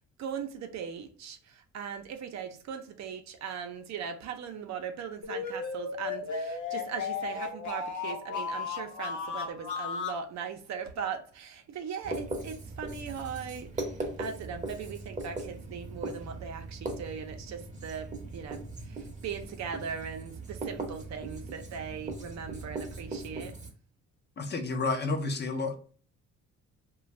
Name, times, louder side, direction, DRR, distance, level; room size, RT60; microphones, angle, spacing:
voice 1, 0.0-23.5, right 7 dB, 65° right, 6 dB, 0.6 m, -39 dB
sound 1, 5.2-10.2, left 5 dB, 70° left, 0.7 m, -35 dB
Writing, 12.0-23.7, right 2 dB, 25° right, 0.7 m, -39 dB
voice 2, 24.4-25.8, left 3 dB, 35° left, 6 dB, 0.5 m, -30 dB
2.5 x 2.2 x 3.1 m, 0.41 s
cardioid pair, 90°, 30 cm